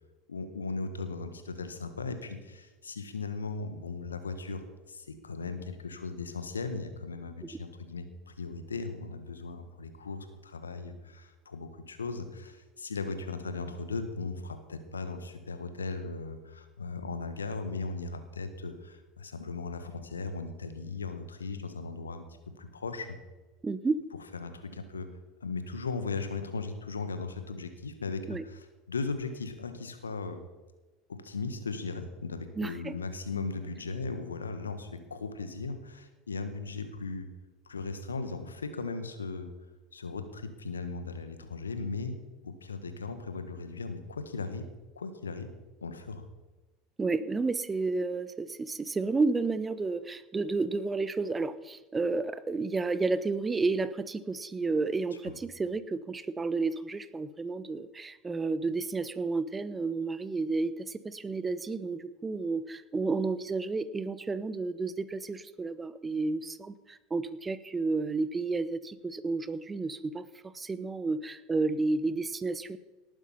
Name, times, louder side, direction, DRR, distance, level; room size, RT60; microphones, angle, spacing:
voice 1, 0.3-23.2 24.4-25.1 25.4-30.4 31.1-37.3 37.6-39.5 39.9-44.7 44.9-45.5 45.8-46.2, left 4 dB, 85° left, 9 dB, 1.5 m, -37 dB
voice 2, 23.6-24.0 28.3-28.4 32.6-33.0 47.0-72.8, right 3 dB, 20° right, 15 dB, 0.8 m, -31 dB
18.5 x 9.1 x 5.6 m, 1.1 s
figure-of-eight pair, 75°, 0 cm